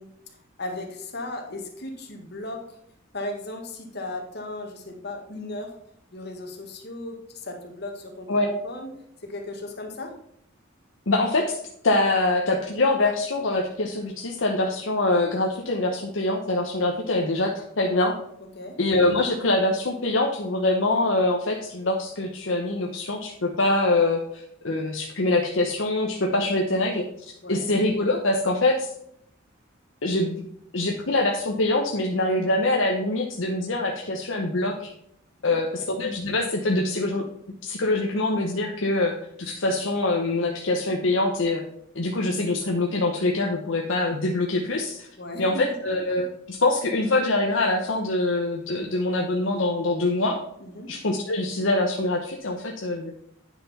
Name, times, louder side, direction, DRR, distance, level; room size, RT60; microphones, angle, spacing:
voice 1, 0.0-2.7 3.1-5.8 6.1-8.3 8.6-8.9 9.2-10.2 18.5-18.8 27.4-27.6 35.4-35.6 45.2-45.6 50.6-50.9, left 2 dB, 55° left, 3 dB, 1.7 m, -36 dB
voice 2, 11.1-18.2 18.8-28.9 30.0-30.4 30.7-34.9 35.4-37.2 37.6-41.6 41.9-45.1 45.4-50.4 50.9-53.1, left 2 dB, 70° left, 1 dB, 1.0 m, -24 dB
9.4 x 5.8 x 4.2 m, 0.72 s
head